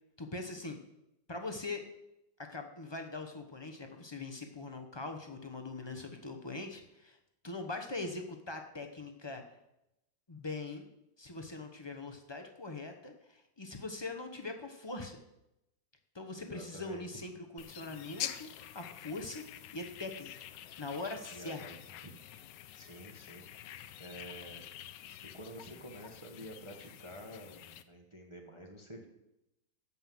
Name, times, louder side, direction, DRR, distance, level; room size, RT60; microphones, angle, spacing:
voice 1, 0.2-0.8 1.3-1.8 2.4-7.2 7.4-9.4 10.3-10.9 11.2-15.2 16.1-18.5 18.7-19.4 19.7-20.3 20.8-21.6, left 3 dB, 30° left, 5 dB, 0.5 m, -42 dB
voice 2, 16.4-17.2 21.3-21.7 22.7-23.7 24.0-24.6 25.3-29.1, equal, 20° right, 2 dB, 1.0 m, -49 dB
sound 1, 17.6-27.8, left 12 dB, 75° left, 1.2 m, -47 dB
11.5 x 5.7 x 7.7 m, 0.88 s
omnidirectional pair, 2.0 m